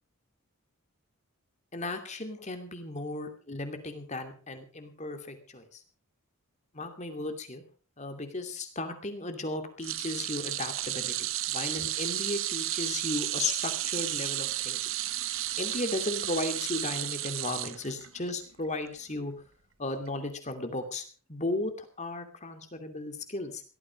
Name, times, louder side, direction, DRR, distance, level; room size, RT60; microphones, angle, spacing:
voice 1, 1.7-5.8 6.7-7.6 8.0-14.9 15.6-19.3 19.8-21.0 21.3-23.6, left 2 dB, 30° left, 7 dB, 2.6 m, -35 dB
sound 1, 9.8-18.3 18.6-18.9 20.1-20.2, right 14 dB, 65° right, 1.0 m, -33 dB
17.5 x 13.0 x 5.3 m, 0.39 s
head